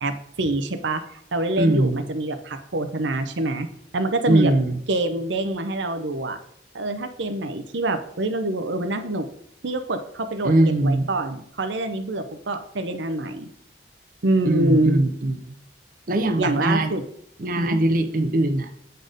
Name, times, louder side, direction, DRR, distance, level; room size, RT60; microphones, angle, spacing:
voice 1, 0.0-3.7 3.9-4.5 4.9-6.4 6.7-9.3 9.6-10.5 10.8-13.5 14.2-15.0 16.4-17.0 17.6-17.8, right 2 dB, 85° right, 8 dB, 0.7 m, -25 dB
voice 2, 1.6-2.0 4.3-4.8 10.4-11.1 14.4-15.6 16.1-16.9 17.4-18.7, right 1 dB, 50° right, 6 dB, 0.7 m, -21 dB
7.9 x 4.3 x 5.0 m, 0.71 s
head